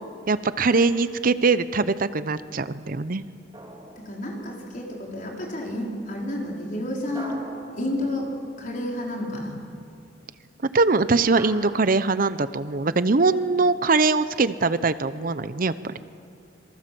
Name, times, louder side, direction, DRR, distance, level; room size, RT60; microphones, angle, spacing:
voice 1, 0.3-3.2 10.7-15.9, right 3 dB, 50° right, 14 dB, 0.8 m, -22 dB
sound 1, 3.5-4.7 7.2-8.8 11.4-11.5, right 2 dB, 25° right, 4.2 m, -42 dB
voice 2, 4.0-7.4 7.7-8.3 8.6-9.6, left 1 dB, 50° left, -1 dB, 5.0 m, -30 dB
26.5 x 23.5 x 7.8 m, 2.4 s
head